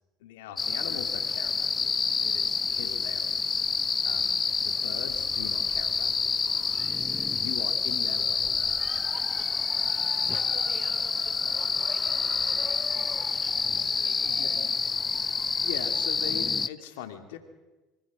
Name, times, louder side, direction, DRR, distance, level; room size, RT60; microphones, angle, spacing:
voice 1, 0.2-3.7 4.0-6.4 7.3-8.6 14.2-14.7 15.4-17.4, left 9 dB, 80° left, 7 dB, 2.8 m, -41 dB
sound 1, 0.6-16.7, left 4 dB, 25° left, 0.7 m, -28 dB
voice 2, 6.5-7.1 8.6-9.4 9.8-14.6, right 6 dB, 55° right, 6 dB, 5.8 m, -51 dB
24.5 x 24.5 x 6.3 m, 1.1 s
hypercardioid pair, 80°, 0 cm